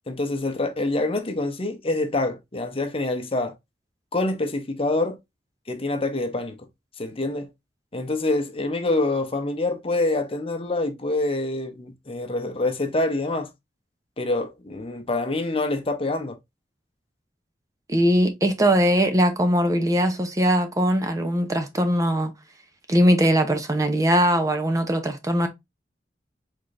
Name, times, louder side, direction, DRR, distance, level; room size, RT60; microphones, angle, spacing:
voice 1, 0.1-3.5 4.1-5.2 5.7-6.5 7.0-7.5 7.9-13.5 14.2-16.4, left 2 dB, 30° left, 0.8 m, -26 dB
voice 2, 17.9-22.3 22.9-25.5, equal, 20° right, 0.7 m, -21 dB
4.9 x 3.7 x 2.5 m
head